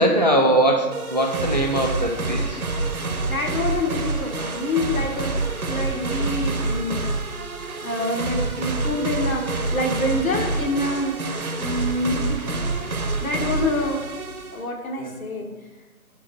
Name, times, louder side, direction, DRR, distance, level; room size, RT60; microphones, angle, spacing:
voice 1, 0.0-2.6 15.0-15.1, right 1 dB, 30° right, 1 dB, 0.4 m, -21 dB
sound 1, 0.9-14.6, right 3 dB, 80° right, 0.8 m, -27 dB
voice 2, 3.3-7.0 7.8-11.2 11.5-12.4 13.2-14.1 14.5-15.5, left 2 dB, 70° left, 2 dB, 1.2 m, -26 dB
6.4 x 3.7 x 4.5 m, 1.2 s
figure-of-eight pair, 140°, 43 cm